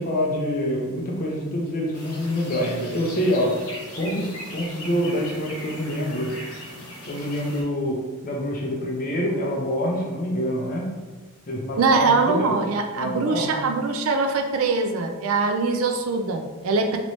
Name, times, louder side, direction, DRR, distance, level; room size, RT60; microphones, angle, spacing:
voice 1, 0.0-3.5 4.0-6.3 7.1-10.9 11.5-12.6 12.9-13.5, equal, 40° left, -1 dB, 0.6 m, -26 dB
sound 1, 1.9-7.6, left 1 dB, 75° left, 0.9 m, -39 dB
voice 2, 11.8-17.0, right 4 dB, 70° right, 5 dB, 0.4 m, -22 dB
3.1 x 3.0 x 2.7 m, 1.3 s
head